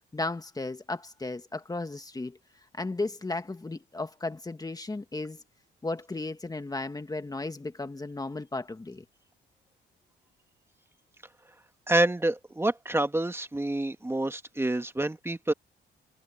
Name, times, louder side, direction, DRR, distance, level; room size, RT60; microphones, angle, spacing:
voice 1, 0.1-2.4 2.8-5.4 5.8-9.0, left 2 dB, 20° left, 1.7 m, -35 dB
voice 2, 11.9-15.5, right 1 dB, 10° right, 1.8 m, -27 dB
cardioid pair, 90°, 20 cm